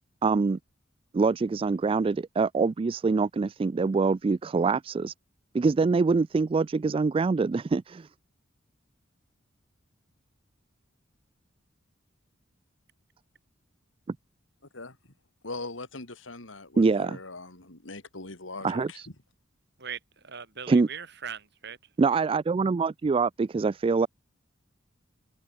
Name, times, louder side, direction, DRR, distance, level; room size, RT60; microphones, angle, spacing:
voice 1, 0.2-0.6 1.1-5.1 5.5-8.1 14.1-14.2 16.8-17.2 18.6-19.1 20.7-20.9 22.0-24.1, right 4 dB, 30° right, 0.3 m, -24 dB
voice 2, 15.4-19.0, left 3 dB, 75° left, 3.4 m, -41 dB
voice 3, 19.8-21.8, right 7 dB, 60° right, 6.6 m, -40 dB
open air
head